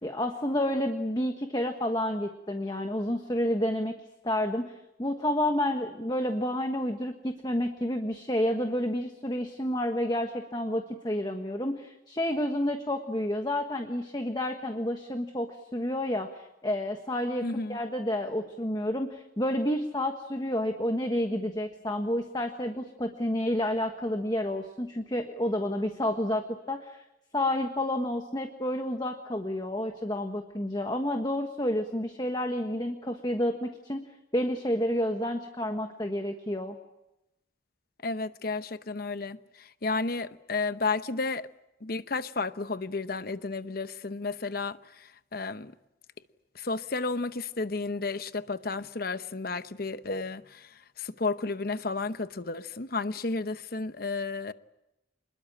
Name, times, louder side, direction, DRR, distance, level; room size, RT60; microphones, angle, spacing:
voice 1, 0.0-3.9 4.2-27.0 27.3-34.0 34.3-36.8, left 1 dB, 20° left, 1.3 m, -30 dB
voice 2, 17.4-17.8 38.0-41.5 41.8-45.7 46.5-50.7 51.0-54.5, left 3 dB, 50° left, 0.9 m, -32 dB
26.0 x 21.5 x 8.7 m
head